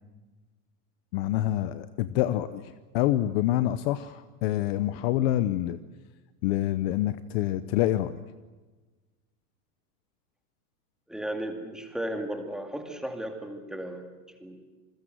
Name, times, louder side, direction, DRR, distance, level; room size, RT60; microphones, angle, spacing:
voice 1, 1.1-5.8 6.4-8.2, left 13 dB, 40° left, 13 dB, 0.9 m, -27 dB
voice 2, 11.1-14.6, right 1 dB, ahead, 4 dB, 2.3 m, -35 dB
28.0 x 21.0 x 7.8 m, 1.3 s
supercardioid pair, 155°, 44 cm